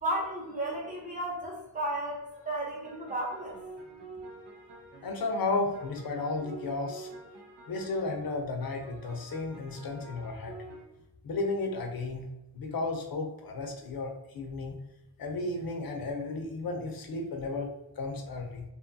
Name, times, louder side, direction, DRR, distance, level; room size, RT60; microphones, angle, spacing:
voice 1, 0.0-3.6, right 1 dB, 15° right, -4 dB, 0.8 m, -33 dB
sound 1, 2.3-10.8, right 2 dB, 65° right, 0.7 m, -48 dB
voice 2, 5.0-7.1 7.7-10.6 11.2-12.2 12.5-14.8 15.2-18.6, left 3 dB, 50° left, 2 dB, 0.5 m, -33 dB
2.6 x 2.3 x 2.6 m, 0.94 s
wide cardioid pair, 125°, 46 cm